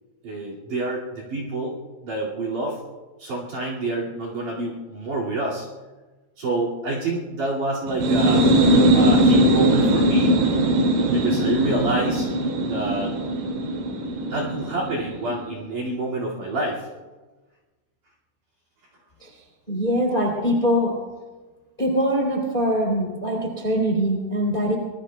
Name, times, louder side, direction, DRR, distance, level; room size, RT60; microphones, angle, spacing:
voice 1, 0.2-1.8 2.0-2.8 3.2-5.7 6.4-8.5 8.9-10.4 11.1-12.3 12.6-13.2 14.3-16.9, right 2 dB, 50° right, -3 dB, 3.2 m, -27 dB
sound 1, 7.9-15.4, right 1 dB, 65° right, 4.1 m, -20 dB
voice 2, 19.7-20.9 21.8-24.8, equal, 15° left, -1 dB, 2.0 m, -22 dB
26.0 x 22.0 x 2.3 m, 1.3 s
omnidirectional pair, 5.9 m